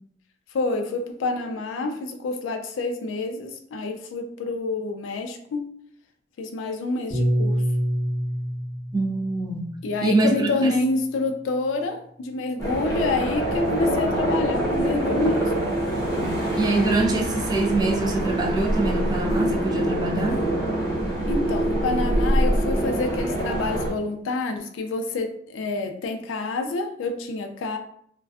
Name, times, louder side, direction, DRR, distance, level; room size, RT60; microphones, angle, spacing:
voice 1, 0.5-5.7 6.4-7.6 9.8-15.5 21.3-27.8, left 3 dB, 90° left, 5 dB, 0.3 m, -27 dB
Piano, 7.1-11.5, equal, 75° left, 0.8 m, -28 dB
voice 2, 8.9-10.8 16.6-20.4, right 2 dB, 20° right, -1 dB, 0.3 m, -24 dB
sound 1, 12.6-23.9, right 1 dB, 15° left, 0.6 m, -24 dB
2.5 x 2.2 x 2.3 m, 0.64 s
head